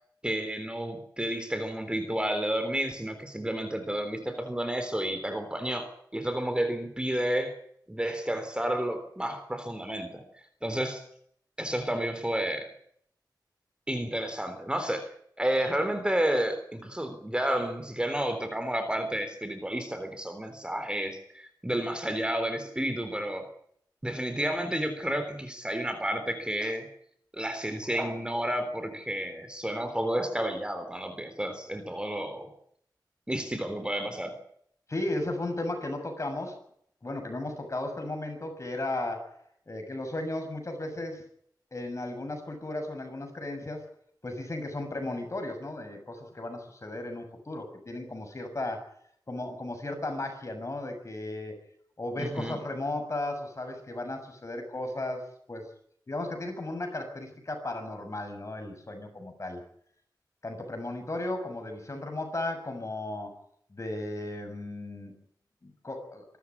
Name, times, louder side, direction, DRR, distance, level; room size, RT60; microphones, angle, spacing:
voice 1, 0.2-7.5 7.9-10.2 10.6-11.0 11.6-12.7 13.9-15.1 15.4-23.5 24.0-26.9 27.3-32.5 33.3-34.3 52.2-52.6, right 1 dB, 15° right, 8 dB, 3.5 m, -31 dB
voice 2, 34.9-36.6 37.0-39.3 39.7-41.2 41.7-43.9 44.2-48.9 49.3-51.6 52.0-55.7 56.1-59.6 60.4-63.4 63.7-65.2 65.6-66.2, left 2 dB, 40° left, 5 dB, 6.8 m, -35 dB
25.5 x 13.5 x 9.7 m, 0.67 s
wide cardioid pair, 100°, 7 cm